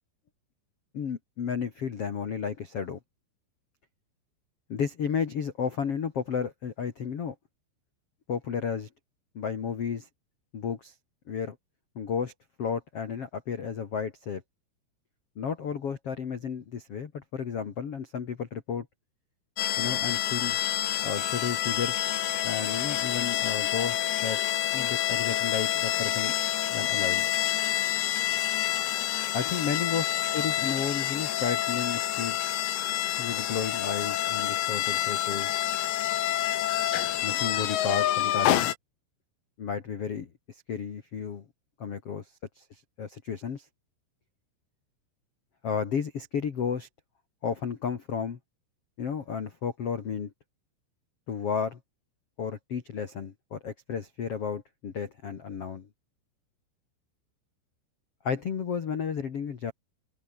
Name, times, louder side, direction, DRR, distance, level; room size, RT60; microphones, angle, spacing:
voice 1, 0.9-3.0 4.7-7.3 8.3-8.9 9.3-10.1 10.5-10.9 11.3-11.5 11.9-12.3 12.6-14.4 15.3-18.9 19.8-20.6 21.0-22.0 22.4-24.4 24.7-26.3 26.7-27.3 29.3-30.0 30.3-32.7 33.2-35.5 37.2-38.7 39.6-40.3 40.7-41.4 41.8-42.2 42.5-43.6 45.6-46.9 47.4-48.4 49.0-50.3 51.3-51.8 52.4-55.9 58.2-59.7, left 6 dB, 70° left, 1.4 m, -32 dB
sound 1, 19.6-38.8, left 12 dB, 90° left, 4.9 m, -28 dB
omnidirectional pair, 5.9 m